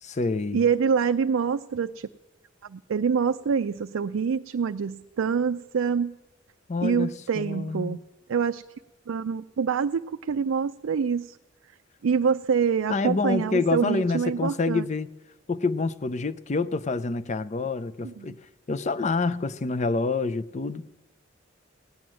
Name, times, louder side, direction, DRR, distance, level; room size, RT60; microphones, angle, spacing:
voice 1, 0.0-0.6 6.7-8.0 12.9-15.1 15.5-18.4 18.7-21.0, left 3 dB, 35° left, 0.5 m, -27 dB
voice 2, 0.5-2.1 2.6-6.1 6.8-8.0 8.3-8.6 9.1-11.4 12.0-14.9 18.0-18.4, right 6 dB, 90° right, 0.4 m, -26 dB
17.0 x 9.4 x 7.5 m
head